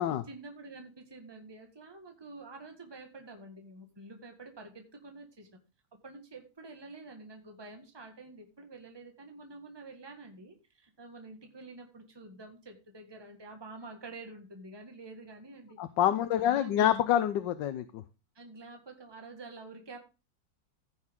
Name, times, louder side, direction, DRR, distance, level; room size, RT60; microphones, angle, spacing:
voice 1, 0.3-5.6 6.0-15.8 16.4-16.9 18.4-20.0, right 3 dB, 15° right, 4 dB, 1.6 m, -48 dB
voice 2, 15.8-18.0, left 11 dB, 85° left, 11 dB, 1.4 m, -27 dB
15.5 x 6.3 x 3.7 m, 0.31 s
omnidirectional pair, 1.9 m